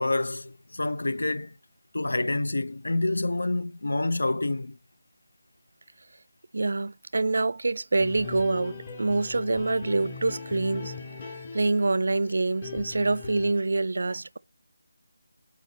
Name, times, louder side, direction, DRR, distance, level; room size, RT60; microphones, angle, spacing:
voice 1, 0.0-1.5 1.9-4.8, left 2 dB, 70° left, 0.4 m, -27 dB
voice 2, 6.5-10.9 11.5-14.4, right 3 dB, 60° right, 0.4 m, -26 dB
sound 1, 8.0-13.5, left 4 dB, 35° left, 1.5 m, -40 dB
8.1 x 4.4 x 2.7 m
figure-of-eight pair, 160°, 0 cm